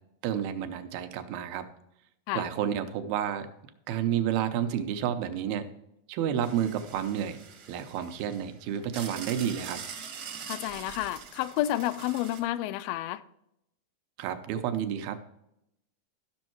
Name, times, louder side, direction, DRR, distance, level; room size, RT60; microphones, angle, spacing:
voice 1, 0.2-1.7 2.3-3.5 3.9-5.7 6.1-7.4 7.7-9.8 14.2-15.2, right 9 dB, 85° right, 2.7 m, -30 dB
sound 1, 6.4-12.4, right 6 dB, 60° right, 1.3 m, -44 dB
voice 2, 10.5-13.2, left 14 dB, 85° left, 2.3 m, -30 dB
13.0 x 6.3 x 4.5 m
omnidirectional pair, 4.2 m